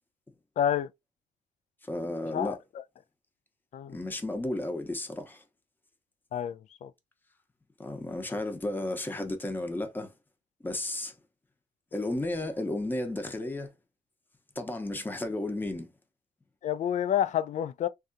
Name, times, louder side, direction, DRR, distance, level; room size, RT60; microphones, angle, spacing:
voice 1, 0.6-0.9 2.3-2.6 3.7-4.0 6.3-6.9 16.6-17.9, left 10 dB, 50° left, 0.4 m, -29 dB
voice 2, 1.8-2.6 3.9-5.4 7.8-10.1 10.6-11.1 11.9-13.7 14.6-15.9, left 1 dB, 10° left, 0.8 m, -33 dB
3.5 x 2.7 x 2.6 m
cardioid pair, 115°, 16 cm